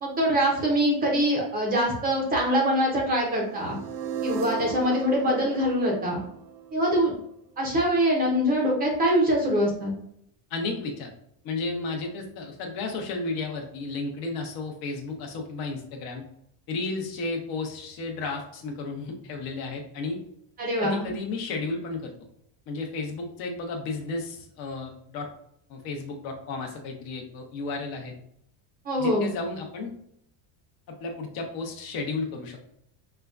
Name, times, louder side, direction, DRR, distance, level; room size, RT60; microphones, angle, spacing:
voice 1, 0.0-3.8 4.2-6.2 6.7-7.1 7.6-9.9 20.6-21.1 28.9-29.3, equal, 20° right, -1 dB, 0.5 m, -24 dB
sound 1, 3.2-7.3, right 5 dB, 75° right, 0.6 m, -36 dB
voice 2, 10.5-11.1 11.4-16.2 16.7-20.2 20.8-22.1 22.7-25.3 25.7-28.1 29.0-29.9 30.9-32.6, left 3 dB, 45° left, 2 dB, 0.8 m, -33 dB
4.9 x 2.2 x 2.3 m, 0.72 s
cardioid pair, 175°, 50 cm